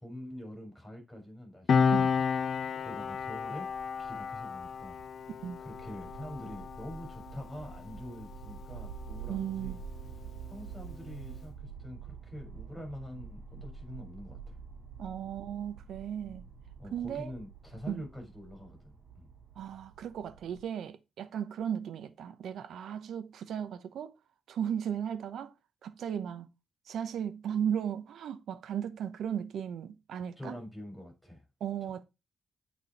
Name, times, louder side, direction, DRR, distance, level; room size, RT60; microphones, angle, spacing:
voice 1, 0.0-2.3 2.8-3.7 4.0-5.3 5.6-9.8 10.5-14.6 16.8-19.3 30.4-31.4, left 1 dB, 5° left, 4.4 m, -45 dB
Piano, 1.7-8.7 9.0-9.2, left 6 dB, 55° left, 0.6 m, -32 dB
sound 1, 2.6-20.6, right 6 dB, 45° right, 4.3 m, -48 dB
voice 2, 9.3-9.8 15.0-16.4 16.9-17.3 17.9-18.0 19.6-24.1 24.5-25.5 25.8-26.5 26.9-30.6 31.6-32.0, right 9 dB, 80° right, 0.8 m, -36 dB
8.3 x 4.5 x 4.1 m
cardioid pair, 135°, 0 cm